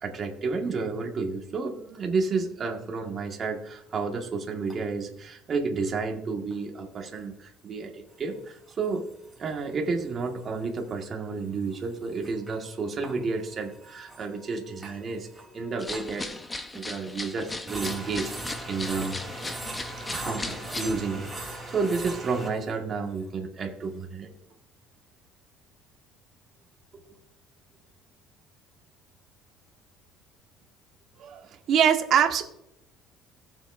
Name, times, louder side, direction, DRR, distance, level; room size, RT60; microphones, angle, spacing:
voice 1, 0.0-9.1 9.4-15.3 15.5-16.4 16.7-19.2 20.1-24.3, right 4 dB, 35° right, 2 dB, 1.9 m, -31 dB
sound 1, 3.9-4.0 4.7-4.8 6.5-6.6 8.5-9.7 10.0-10.2 10.4-10.5 10.8-10.9 11.7-16.8 17.2-17.3 17.7-22.7, right 2 dB, 5° right, 3.6 m, -40 dB
sound 2, 15.8-20.9, left 2 dB, 15° left, 0.9 m, -37 dB
voice 2, 31.2-32.4, right 8 dB, 55° right, 4 dB, 1.4 m, -22 dB
16.0 x 7.3 x 2.7 m, 0.80 s
cardioid pair, 130°, 0 cm